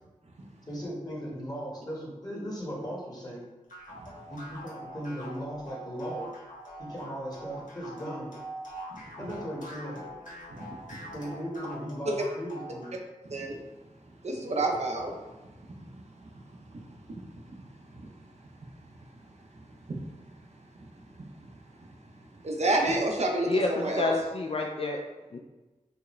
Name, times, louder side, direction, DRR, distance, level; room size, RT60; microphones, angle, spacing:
voice 1, 0.7-3.4 4.3-6.3 6.8-8.3 9.2-10.0 11.1-12.9, equal, 30° left, -4 dB, 1.3 m, -37 dB
sound 1, 3.7-13.0, equal, 80° left, 1.1 m, -44 dB
voice 2, 13.2-13.6 14.2-15.2 16.7-17.0 17.9-18.1 19.9-20.0 21.5-21.6 22.4-24.1, right 2 dB, 55° right, 1 dB, 0.6 m, -29 dB
voice 3, 23.5-25.0 25.3-25.4, left 2 dB, 45° left, 1 dB, 0.4 m, -28 dB
4.7 x 2.1 x 3.1 m, 1.1 s
wide cardioid pair, 60°, 13 cm